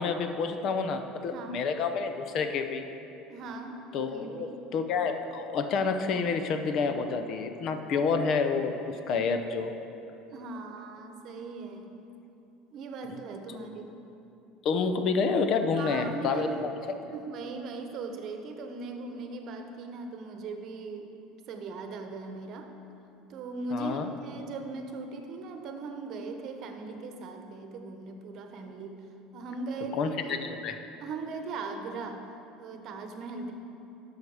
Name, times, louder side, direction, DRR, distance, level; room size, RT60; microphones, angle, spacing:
voice 1, 0.0-2.8 3.9-9.7 13.5-13.8 14.6-16.5 23.7-24.1 29.9-30.8, left 5 dB, 45° left, 7 dB, 0.7 m, -29 dB
voice 2, 1.3-1.6 3.3-3.8 4.1-4.6 10.3-11.9 12.7-13.9 15.7-16.6 17.1-21.1 21.5-22.7 23.3-29.0 29.3-30.5 31.0-32.3 32.6-33.5, right 3 dB, 45° right, 5 dB, 1.0 m, -39 dB
12.0 x 6.5 x 4.9 m, 2.9 s
cardioid pair, 140°, 0 cm